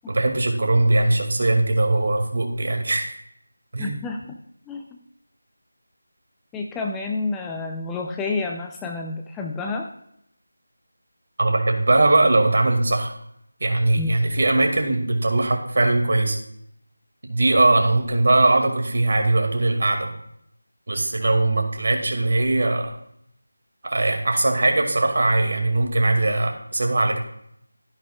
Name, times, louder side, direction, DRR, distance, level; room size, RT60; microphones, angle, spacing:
voice 1, 0.1-3.1 3.7-4.0 11.4-13.1 13.6-16.4 17.3-20.1 20.9-22.9 23.8-27.2, right 2 dB, 50° right, 3 dB, 2.2 m, -20 dB
voice 2, 3.8-4.4 4.7-4.8 6.5-9.9 14.0-14.1, left 3 dB, 5° left, 2 dB, 0.5 m, -29 dB
13.0 x 10.5 x 2.4 m, 0.72 s
figure-of-eight pair, 165°, 0 cm